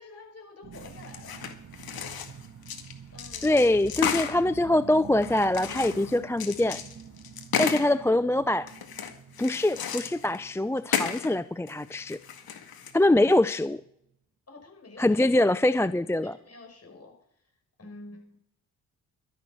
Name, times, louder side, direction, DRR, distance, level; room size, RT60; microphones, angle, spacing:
voice 1, 0.0-1.5 3.1-3.5 14.5-15.2 16.2-17.1 17.8-18.4, left 3 dB, 35° left, 2 dB, 6.0 m, -48 dB
sound 1, 0.6-13.3 13.8-13.9, right 7 dB, 40° right, 1.9 m, -47 dB
sound 2, 0.7-2.9 3.2-4.4 5.2-7.9 8.7-10.4 10.8-11.4 11.7-12.9, left 8 dB, 60° left, 2.0 m, -33 dB
voice 2, 3.4-6.8 7.6-8.7 9.4-12.2 12.9-13.8 15.0-16.4, left 1 dB, 5° left, 15 dB, 0.5 m, -24 dB
12.0 x 10.5 x 6.1 m, 0.74 s
hypercardioid pair, 40°, 41 cm